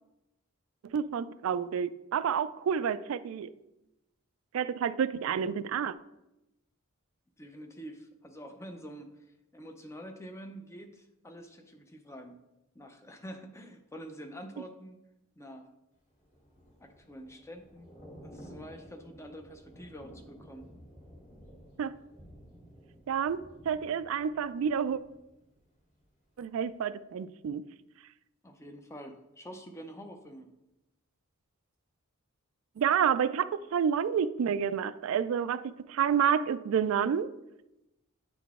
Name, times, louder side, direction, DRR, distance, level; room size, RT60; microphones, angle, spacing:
voice 1, 0.8-3.5 4.5-5.9 21.8-21.9 23.1-25.0 26.4-27.6 32.8-37.3, right 7 dB, 70° right, 14 dB, 0.3 m, -29 dB
voice 2, 7.4-12.4 12.7-15.0 15.4-15.7 16.8-17.9 18.2-20.6 28.4-30.5, equal, 15° left, 5 dB, 0.5 m, -47 dB
Thunder / Rain, 16.1-26.0 26.4-26.6, equal, 30° left, 1.7 m, -53 dB
9.3 x 3.8 x 3.6 m, 0.93 s
head